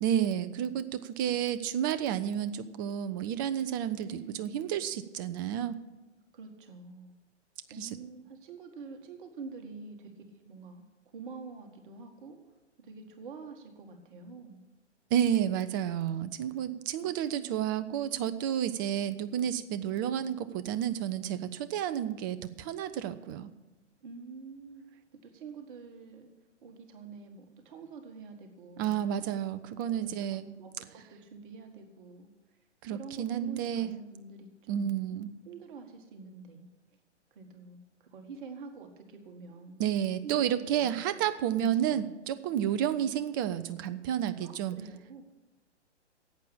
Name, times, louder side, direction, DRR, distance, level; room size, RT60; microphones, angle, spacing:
voice 1, 0.0-4.1 4.4-5.8 7.8-7.9 15.1-23.5 28.8-30.5 32.8-33.9 34.7-35.3 39.8-44.8, right 10 dB, 20° right, 13 dB, 0.4 m, -31 dB
voice 2, 4.0-4.5 6.3-7.1 7.7-14.6 17.0-17.6 24.0-24.9 25.1-26.3 26.6-29.3 29.9-32.6 32.9-35.2 35.5-36.7 37.3-39.8 40.2-41.0 41.5-42.2 44.4-45.2, right 4 dB, 45° right, 5 dB, 1.8 m, -47 dB
11.0 x 8.5 x 8.9 m, 1.1 s
figure-of-eight pair, 115°, 35 cm